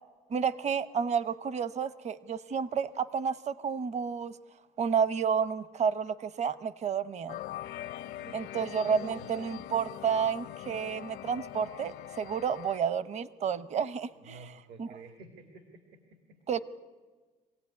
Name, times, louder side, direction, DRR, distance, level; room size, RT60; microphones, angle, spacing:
voice 1, 0.3-4.3 4.8-7.4 8.3-14.4 14.8-14.9 16.5-16.6, right 7 dB, 40° right, 15 dB, 0.9 m, -30 dB
sound 1, 7.3-12.8, left 13 dB, 75° left, 0.7 m, -42 dB
voice 2, 8.0-9.3 14.2-16.4, right 4 dB, 75° right, 6 dB, 2.3 m, -51 dB
25.0 x 16.0 x 9.7 m, 1.4 s
cardioid pair, 110°, 17 cm